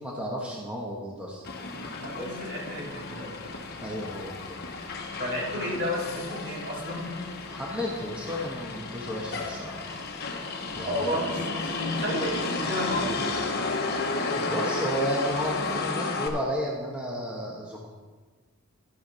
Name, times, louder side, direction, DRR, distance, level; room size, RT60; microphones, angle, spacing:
voice 1, 0.0-1.4 3.8-4.6 7.5-9.8 10.7-11.1 14.4-17.9, equal, 5° right, -3 dB, 1.2 m, -33 dB
Motor vehicle (road), 1.4-16.3, left 3 dB, 50° left, 1.2 m, -33 dB
voice 2, 1.7-3.3 5.1-7.2 10.9-13.4, equal, 55° right, -6 dB, 4.1 m, -32 dB
12.0 x 6.8 x 5.5 m, 1.4 s
head